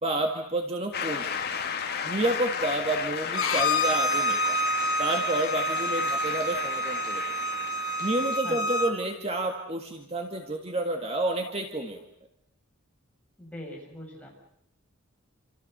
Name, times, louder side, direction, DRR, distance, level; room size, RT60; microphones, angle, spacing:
voice 1, 0.0-1.2 2.0-4.6 5.0-7.2 8.0-12.0, right 1 dB, 25° right, 4 dB, 1.9 m, -29 dB
Shout / Cheering / Applause, 0.9-8.4, left 6 dB, 45° left, 2.1 m, -34 dB
Bowed string instrument, 3.3-8.9, equal, 65° left, 2.3 m, -28 dB
voice 2, 8.4-8.9 13.4-14.3, left 1 dB, 5° left, -2 dB, 7.3 m, -42 dB
28.0 x 28.0 x 6.8 m, 0.74 s
head